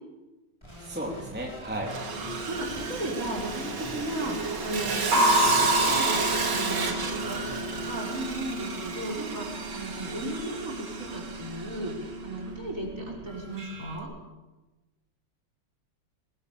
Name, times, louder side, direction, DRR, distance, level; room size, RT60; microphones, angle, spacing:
sound 1, 0.6-7.8, equal, 10° left, 7.6 m, -44 dB
voice 1, 0.8-1.9, right 1 dB, 5° right, -1 dB, 3.3 m, -34 dB
Sawing, 1.9-12.1, right 5 dB, 55° right, 2.7 m, -32 dB
voice 2, 2.1-14.1, right 1 dB, 40° right, -1 dB, 6.1 m, -36 dB
sound 2, 2.1-14.0, equal, 80° right, 5.0 m, -31 dB
23.5 x 21.0 x 7.1 m, 1.1 s
omnidirectional pair, 2.2 m